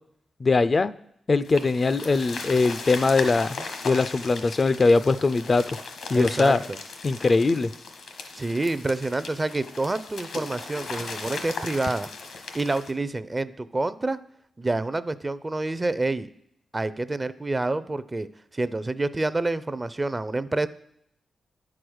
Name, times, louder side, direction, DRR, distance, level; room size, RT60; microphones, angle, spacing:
voice 1, 0.4-0.9 1.3-5.6 6.1-6.6 7.0-7.7, left 3 dB, 40° left, 15 dB, 0.3 m, -21 dB
sound 1, 1.5-12.9, left 4 dB, 85° left, 1.2 m, -37 dB
voice 2, 6.1-6.8 8.4-14.2 14.6-16.3 16.7-18.3 18.5-20.7, right 2 dB, 25° right, 15 dB, 0.4 m, -28 dB
9.5 x 4.9 x 6.2 m, 0.73 s
cardioid pair, 75°, 0 cm